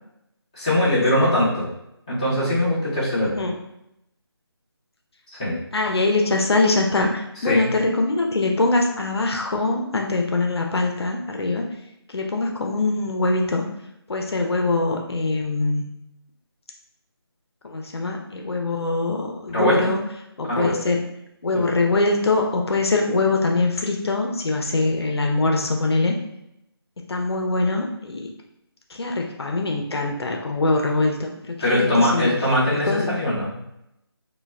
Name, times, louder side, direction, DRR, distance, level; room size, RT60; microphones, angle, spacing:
voice 1, 0.6-1.7 2.1-3.3 5.4-5.6 7.4-7.6 19.5-19.9 20.5-20.7 21.5-21.6 31.6-33.5, left 1 dB, 15° left, -10 dB, 0.6 m, -21 dB
voice 2, 3.2-3.5 5.7-11.7 12.1-13.6 14.1-15.8 17.6-20.0 20.4-21.0 21.4-26.2 27.1-28.3 28.9-32.3 32.7-33.1, left 2 dB, 70° left, 2 dB, 0.5 m, -23 dB
2.2 x 2.0 x 3.3 m, 0.81 s
figure-of-eight pair, 165°, 14 cm